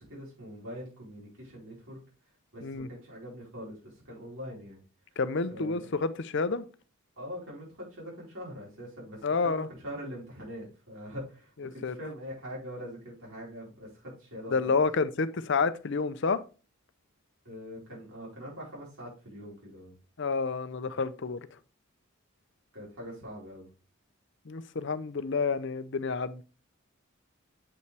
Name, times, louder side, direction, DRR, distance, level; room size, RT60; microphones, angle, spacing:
voice 1, 0.0-2.0 2.5-4.8 5.5-5.8 7.2-14.8 17.4-20.0 22.7-23.7, equal, 70° right, 4.7 m, -43 dB
voice 2, 5.2-6.6 9.2-9.7 11.6-11.9 14.5-16.4 20.2-21.5 24.5-26.4, left 4 dB, 55° left, 0.6 m, -29 dB
7.9 x 5.5 x 3.4 m
head